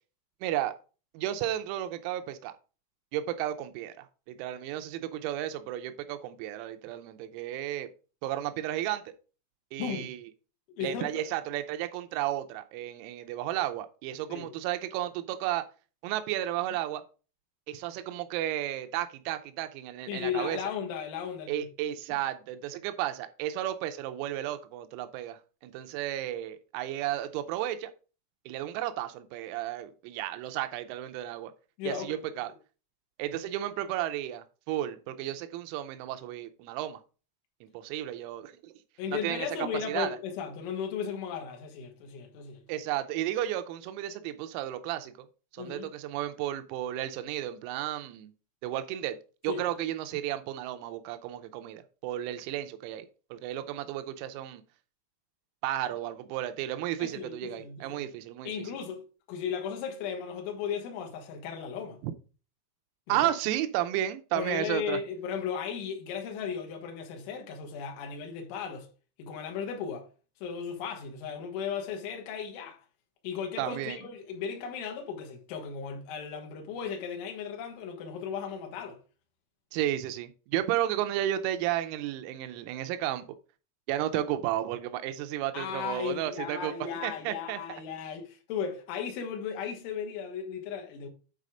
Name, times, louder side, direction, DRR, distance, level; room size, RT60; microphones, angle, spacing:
voice 1, 0.4-0.8 1.2-2.5 3.1-7.9 8.2-9.0 9.7-10.2 10.8-15.7 16.0-17.0 17.7-20.6 21.5-27.9 28.5-31.5 31.9-32.5 33.2-37.0 37.6-38.7 39.1-39.5 39.9-40.2 42.7-45.3 45.5-48.3 48.6-49.2 49.4-53.1 53.3-54.6 55.6-58.5 62.0-62.1 63.1-65.0 73.6-74.0 79.7-83.3 83.9-87.6, right 12 dB, 90° right, 3.4 m, -33 dB
voice 2, 9.8-10.1 10.8-11.2 14.3-14.5 20.1-21.7 31.8-32.3 39.0-42.6 45.6-45.9 49.5-49.6 57.0-58.0 58.5-59.0 59.3-62.0 63.1-63.3 64.4-68.9 69.2-70.1 70.4-72.8 73.2-79.0 85.5-91.1, left 7 dB, 70° left, 3.8 m, -36 dB
9.6 x 4.2 x 5.0 m
omnidirectional pair, 6.0 m